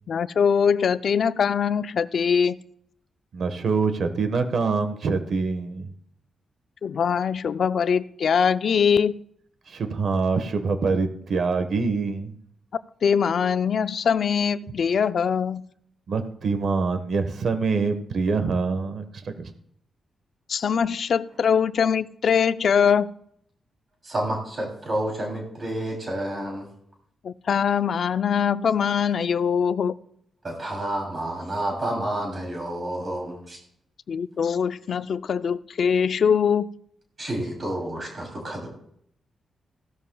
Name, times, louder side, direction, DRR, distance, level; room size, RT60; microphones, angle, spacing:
voice 1, 0.1-2.6 6.8-9.1 13.0-15.7 20.5-23.1 27.2-30.0 34.1-36.7, left 7 dB, 55° left, 12 dB, 0.5 m, -22 dB
voice 2, 3.3-5.9 9.7-12.3 16.1-19.5, right 4 dB, 55° right, 8 dB, 1.3 m, -25 dB
voice 3, 24.0-26.7 30.4-33.6 37.2-38.7, right 1 dB, 30° right, 0 dB, 3.1 m, -29 dB
16.0 x 13.0 x 2.3 m, 0.68 s
wide cardioid pair, 130°, 0 cm